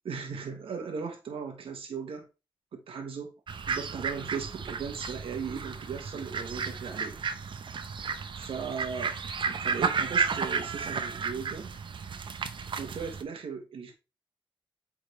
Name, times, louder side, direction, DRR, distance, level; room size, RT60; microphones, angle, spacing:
voice 1, 0.0-2.3 2.7-3.3 3.7-7.2 8.1-9.2 9.4-11.7 12.8-13.9, right 6 dB, 85° right, 1.4 m, -37 dB
sound 1, 3.5-13.2, right 5 dB, 60° right, 0.7 m, -33 dB
8.5 x 3.8 x 3.3 m
cardioid pair, 85°, 9 cm